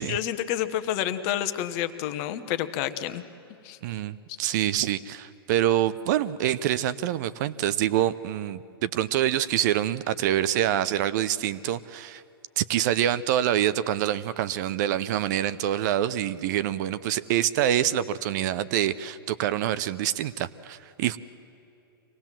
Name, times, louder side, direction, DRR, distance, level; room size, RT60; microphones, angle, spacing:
voice 1, 0.0-3.2 3.6-3.8, left 11 dB, 40° left, 10 dB, 1.2 m, -29 dB
voice 2, 3.8-12.2 12.6-21.2, right 11 dB, 45° right, 15 dB, 0.7 m, -26 dB
24.5 x 18.0 x 7.4 m, 2.9 s
hypercardioid pair, 120°, 13 cm